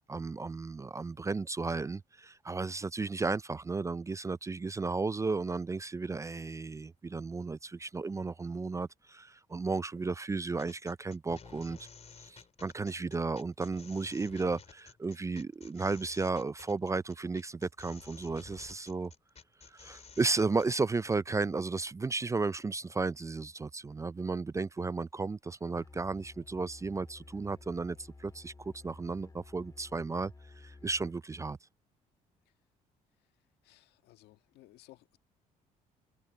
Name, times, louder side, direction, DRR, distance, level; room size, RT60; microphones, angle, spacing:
voice 1, 0.1-11.9 12.2-19.1 19.7-31.6, right 3 dB, 20° right, 0.4 m, -34 dB
sound 1, 10.6-20.8, left 5 dB, 40° left, 3.9 m, -53 dB
Musical instrument, 25.7-31.2, left 3 dB, 20° left, 2.0 m, -53 dB
voice 2, 33.6-35.2, left 16 dB, 80° left, 1.7 m, -58 dB
supercardioid pair, 70°, 17 cm